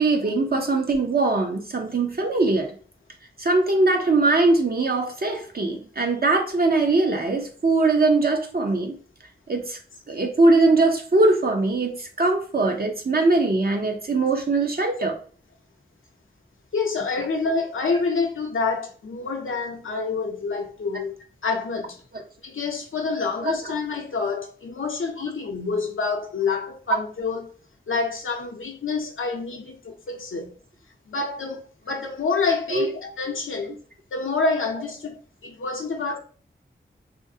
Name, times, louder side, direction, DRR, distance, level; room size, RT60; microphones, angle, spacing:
voice 1, 0.0-2.7 3.4-9.0 9.5-9.8 10.1-15.2 23.4-23.6 32.7-32.9, right 3 dB, 50° right, 0.5 m, -21 dB
voice 2, 16.7-21.2 21.4-22.0 22.4-27.5 27.9-30.5 31.1-33.8 34.1-36.2, left 4 dB, 80° left, 0.5 m, -27 dB
3.1 x 2.5 x 2.6 m
wide cardioid pair, 65°, 20 cm